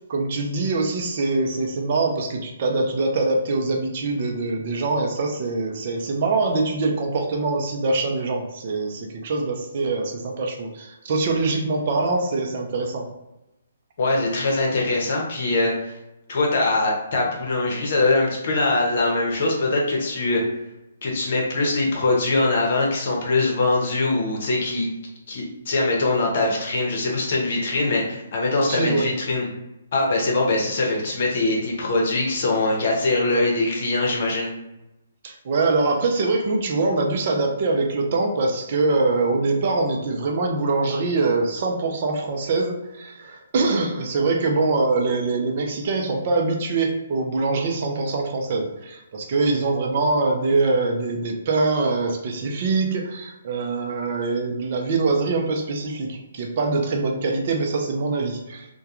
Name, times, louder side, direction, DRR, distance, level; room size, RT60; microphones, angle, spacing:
voice 1, 0.1-13.1 28.7-29.0 35.2-58.7, right 3 dB, 50° right, 1 dB, 0.5 m, -23 dB
voice 2, 14.0-15.9 16.3-20.4 21.0-24.9 25.3-29.5 29.9-34.5, left 2 dB, 55° left, -1 dB, 0.8 m, -22 dB
2.2 x 2.2 x 2.8 m, 0.93 s
hypercardioid pair, 140°, 0 cm